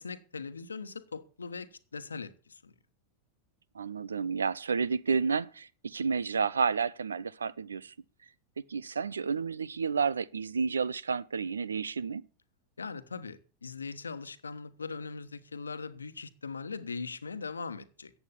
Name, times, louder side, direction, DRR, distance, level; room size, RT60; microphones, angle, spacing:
voice 1, 0.0-2.7 12.8-18.1, left 4 dB, 75° left, 1.2 m, -40 dB
voice 2, 3.7-7.9 8.7-12.2, right 5 dB, 70° right, 0.6 m, -31 dB
14.5 x 8.7 x 7.0 m
figure-of-eight pair, 90°, 0 cm